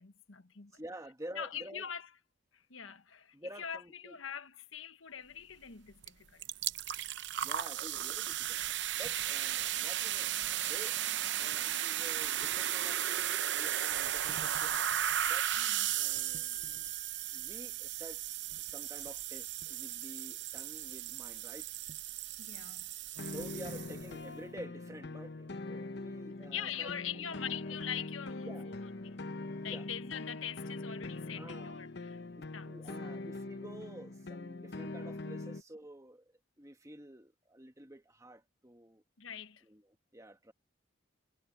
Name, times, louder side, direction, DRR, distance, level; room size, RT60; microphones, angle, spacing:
voice 1, 0.0-0.8 1.3-2.1 2.5-6.4 15.6-16.0 22.4-22.9 26.5-29.2 29.6-32.2 32.5-32.8 39.2-39.6, left 8 dB, 85° left, 1.3 m, -43 dB
voice 2, 0.7-1.9 3.3-4.2 7.4-8.6 8.9-11.0 11.4-14.9 15.3-15.5 15.9-16.9 17.3-18.2 18.6-21.7 23.2-27.4 28.4-28.7 29.6-29.9 31.3-31.8 32.4-39.0 39.6-40.5, right 1 dB, 15° right, 1.7 m, -50 dB
sound 1, 6.0-6.1 6.4-24.1, right 11 dB, 60° right, 0.7 m, -35 dB
Wind instrument woodwind instrument, 14.7-22.0, right 2 dB, 40° right, 4.6 m, -57 dB
sound 2, 23.2-35.6, left 2 dB, 55° left, 0.9 m, -43 dB
head